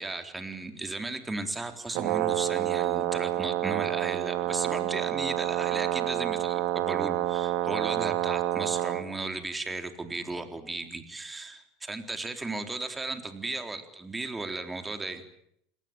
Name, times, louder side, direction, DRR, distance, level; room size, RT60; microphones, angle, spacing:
voice 1, 0.0-15.2, right 3 dB, 15° right, 7 dB, 3.8 m, -35 dB
Brass instrument, 1.9-9.0, right 14 dB, 70° right, 2.3 m, -28 dB
28.5 x 19.0 x 9.0 m, 0.72 s
supercardioid pair, 95°, 0 cm